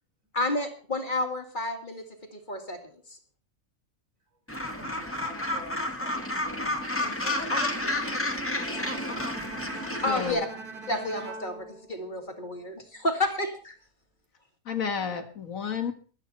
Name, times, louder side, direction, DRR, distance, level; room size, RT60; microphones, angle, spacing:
voice 1, 0.3-2.0 2.3-3.2 7.5-7.6 9.7-10.5 10.9-13.7, left 2 dB, 35° left, 5 dB, 2.3 m, -30 dB
Gull seagull, 4.5-10.3, left 1 dB, 10° left, 1.8 m, -31 dB
voice 2, 4.7-9.3, equal, 70° right, -1 dB, 5.9 m, -46 dB
Bowed string instrument, 8.6-12.7, right 3 dB, 40° right, 2.4 m, -42 dB
voice 3, 10.1-10.4 14.7-15.9, left 6 dB, 75° left, 7 dB, 2.1 m, -31 dB
23.0 x 9.1 x 4.2 m, 0.39 s
omnidirectional pair, 1.4 m